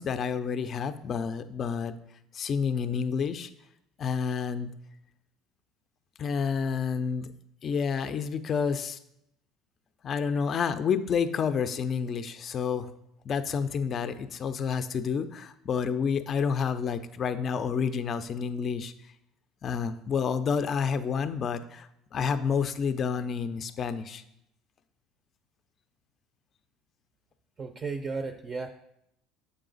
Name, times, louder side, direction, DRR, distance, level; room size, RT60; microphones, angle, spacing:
voice 1, 0.0-1.9 2.3-3.5 4.0-4.7 6.2-7.3 7.6-9.0 10.0-12.9 13.3-18.9 19.6-24.2, left 6 dB, 40° left, 10 dB, 0.4 m, -29 dB
voice 2, 27.6-28.7, right 4 dB, 30° right, 7 dB, 0.5 m, -34 dB
6.8 x 4.8 x 3.9 m, 0.79 s
cardioid pair, 115°, 0 cm